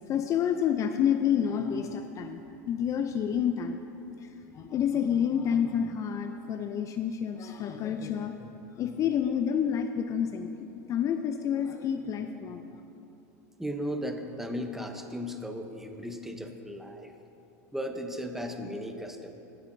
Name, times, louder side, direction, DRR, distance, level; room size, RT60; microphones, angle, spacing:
voice 1, 0.1-2.4 2.7-3.8 4.2-4.3 4.5-8.5 8.8-12.6, left 8 dB, 35° left, 7 dB, 0.4 m, -29 dB
voice 2, 13.6-17.1 17.7-19.3, equal, 5° right, 5 dB, 0.7 m, -36 dB
15.5 x 7.5 x 2.7 m, 2.9 s
hypercardioid pair, 105°, 9 cm